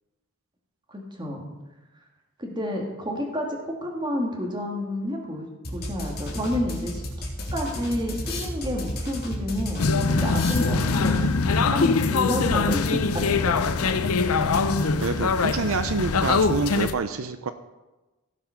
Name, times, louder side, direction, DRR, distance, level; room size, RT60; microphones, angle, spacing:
voice 1, 0.9-1.5 2.4-11.3 11.7-14.2, left 1 dB, 20° right, 0 dB, 2.2 m, -30 dB
sound 1, 5.6-11.5, left 1 dB, 45° left, 3.0 m, -33 dB
sound 2, 9.8-16.9, left 4 dB, 90° left, 0.7 m, -23 dB
voice 2, 14.8-17.5, right 4 dB, 75° right, 10 dB, 0.6 m, -27 dB
16.5 x 5.8 x 5.8 m, 1.1 s
head